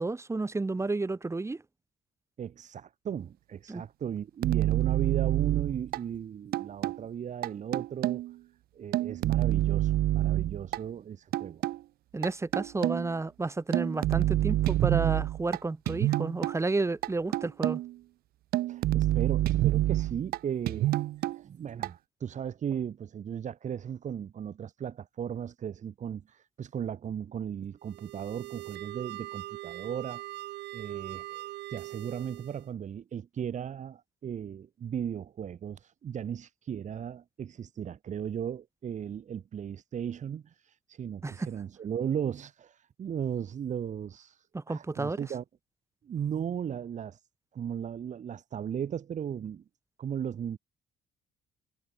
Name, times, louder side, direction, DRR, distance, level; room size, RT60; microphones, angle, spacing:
voice 1, 0.0-1.6 3.7-3.8 12.1-17.8 41.2-41.5 44.5-45.2, right 3 dB, 15° right, 3.0 m, -31 dB
voice 2, 2.4-8.2 8.7-11.6 18.7-21.0 21.3-30.2 30.7-45.4 46.0-47.2 47.5-49.6 50.0-50.6, right 8 dB, 45° right, 2.6 m, -36 dB
sound 1, 4.4-6.0 6.5-7.0 7.4-8.3 8.9-10.8 11.3-11.8 12.2-13.1 13.7-15.6 15.9-16.6 17.0-17.9 18.5-20.4 20.7-21.4 21.8-21.9, right 15 dB, 65° right, 0.5 m, -27 dB
sound 2, 27.8-32.7, right 16 dB, 80° right, 5.3 m, -42 dB
cardioid pair, 110°, 17 cm